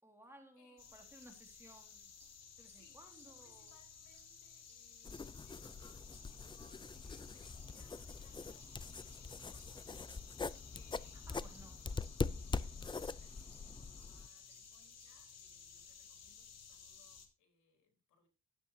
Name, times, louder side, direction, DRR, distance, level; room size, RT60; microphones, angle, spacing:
voice 1, 0.0-2.1 2.6-3.7 11.3-11.8, right 1 dB, 10° right, 3.8 m, -59 dB
voice 2, 0.5-1.1 2.7-9.9 10.7-11.6 12.3-18.3, left 5 dB, 75° left, 4.4 m, -70 dB
sound 1, 0.8-17.3, left 6 dB, 60° left, 2.8 m, -56 dB
sound 2, 1.1-15.1, right 5 dB, 40° right, 2.5 m, -72 dB
sound 3, 5.0-14.3, left 4 dB, 15° left, 0.4 m, -43 dB
12.5 x 9.1 x 2.8 m
cardioid pair, 90°, 30 cm